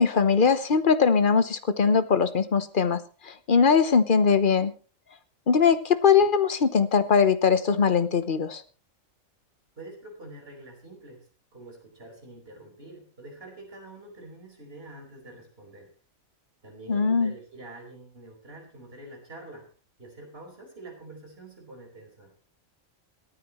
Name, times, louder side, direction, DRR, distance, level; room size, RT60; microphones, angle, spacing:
voice 1, 0.0-4.7 5.5-8.6 16.9-17.3, left 6 dB, 40° left, 12 dB, 1.1 m, -21 dB
voice 2, 9.7-15.9 16.6-19.7 20.0-22.3, right 2 dB, 45° right, 0 dB, 5.1 m, -46 dB
27.5 x 9.3 x 3.1 m, 0.36 s
omnidirectional pair, 1.4 m